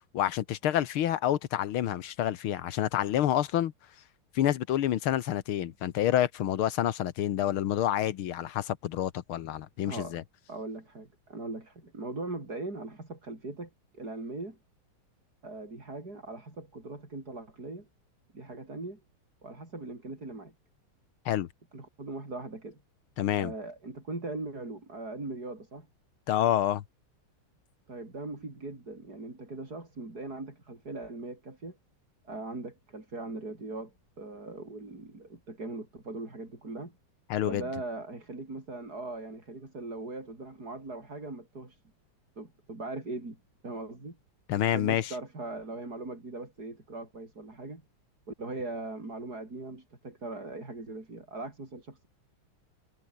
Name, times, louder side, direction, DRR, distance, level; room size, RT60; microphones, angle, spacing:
voice 1, 0.1-3.7 4.4-10.2 21.3-21.5 23.2-23.5 26.3-26.8 37.3-37.6 44.5-45.1, left 11 dB, 80° left, 1.9 m, -28 dB
voice 2, 9.9-10.2 10.5-14.6 15.4-17.9 18.3-19.0 19.4-20.5 21.7-22.8 23.4-25.9 27.9-31.8 32.2-36.9 37.5-41.8 42.4-43.4 43.6-44.2 44.6-47.8 48.3-52.1, right 2 dB, 45° right, 6.1 m, -40 dB
omnidirectional pair, 2.3 m